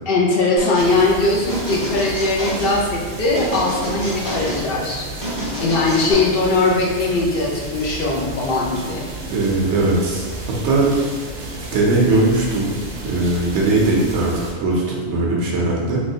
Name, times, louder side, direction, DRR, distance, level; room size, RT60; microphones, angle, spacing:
voice 1, 0.1-5.0 5.6-9.0, left 2 dB, 60° left, -3 dB, 0.8 m, -20 dB
sound 1, 0.6-0.9 1.5-2.8 3.3-4.6 5.2-6.1, equal, 20° left, 0.9 m, -28 dB
sound 2, 0.8-14.5, right 2 dB, 50° right, 0.7 m, -33 dB
voice 2, 9.3-10.3 10.6-10.9 11.7-12.7 13.0-16.0, right 2 dB, 85° right, -3 dB, 0.9 m, -19 dB
3.0 x 2.9 x 2.7 m, 1.5 s
omnidirectional pair, 1.2 m